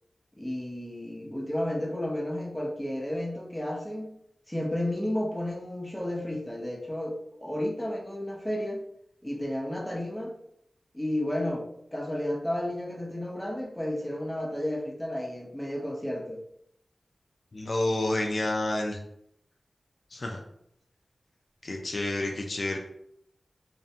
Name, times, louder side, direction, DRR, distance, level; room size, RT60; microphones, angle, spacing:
voice 1, 0.4-4.2 4.5-8.8 9.2-10.3 10.9-11.7 11.9-16.4, left 1 dB, 10° left, -2 dB, 0.6 m, -32 dB
voice 2, 17.5-19.0 20.1-20.4 21.6-22.8, left 1 dB, 60° left, 1 dB, 0.3 m, -29 dB
2.4 x 2.1 x 2.7 m, 0.74 s
cardioid pair, 45°, 0 cm